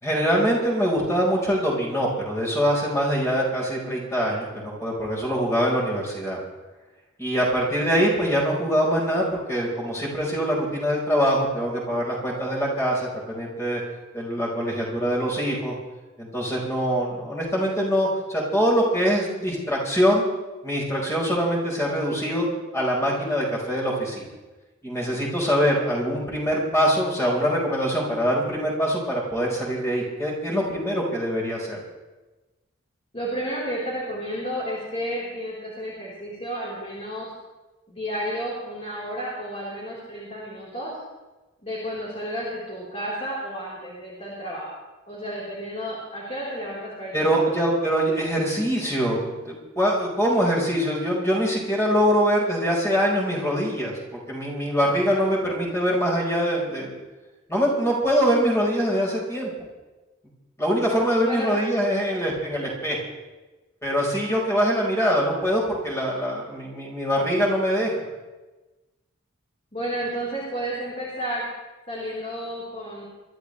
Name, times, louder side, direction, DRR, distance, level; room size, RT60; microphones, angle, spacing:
voice 1, 0.0-6.4 7.2-13.8 14.1-15.7 16.2-20.2 20.6-22.5 22.7-24.2 24.8-31.8 47.1-56.9 57.5-59.7 60.6-63.0 63.8-67.9, equal, 15° left, -3 dB, 4.5 m, -23 dB
voice 2, 33.1-37.3 37.9-41.0 41.6-44.7 45.1-47.5 61.2-61.5 69.7-71.5 71.9-73.0, equal, 30° left, -8 dB, 4.0 m, -32 dB
24.0 x 13.0 x 3.3 m, 1.2 s
head